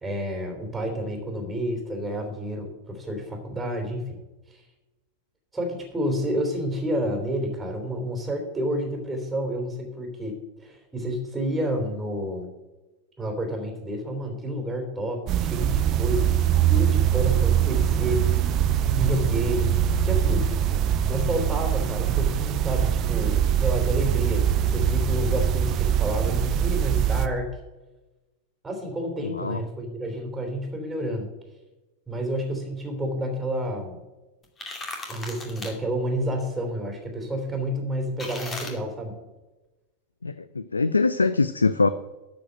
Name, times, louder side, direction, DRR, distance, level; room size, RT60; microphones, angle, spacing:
voice 1, 0.0-4.2 4.5-4.6 5.5-12.5 13.2-16.3 16.7-18.4 18.9-19.8 20.0-20.5 21.1-27.5 28.6-31.3 32.1-34.0 35.1-39.2, equal, 10° right, 2 dB, 3.2 m, -30 dB
sound 1, 15.3-27.3, right 9 dB, 35° right, 0.8 m, -23 dB
voice 2, 29.2-29.6 40.2-41.9, left 4 dB, 80° left, 14 dB, 0.4 m, -23 dB
sound 2, 34.4-35.7 38.2-38.7, left 2 dB, 20° left, 2.4 m, -36 dB
13.0 x 5.2 x 7.8 m, 1.1 s
figure-of-eight pair, 90°, 0 cm